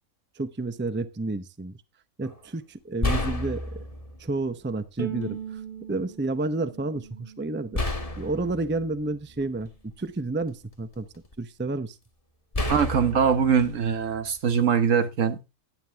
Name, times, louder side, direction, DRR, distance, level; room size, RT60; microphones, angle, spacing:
voice 1, 0.4-1.8 2.2-3.9 4.2-5.6 5.9-7.8 8.2-11.1 11.4-12.0, right 2 dB, 10° right, 0.6 m, -30 dB
sound 1, 2.2-2.4 3.0-4.3 5.2-5.3 7.7-9.9 10.5-11.3 12.5-14.6, left 2 dB, 25° left, 1.6 m, -31 dB
Bowed string instrument, 5.0-8.2, right 7 dB, 40° right, 1.3 m, -39 dB
voice 2, 12.7-15.5, right 7 dB, 70° right, 1.5 m, -22 dB
11.0 x 10.0 x 3.5 m
omnidirectional pair, 1.4 m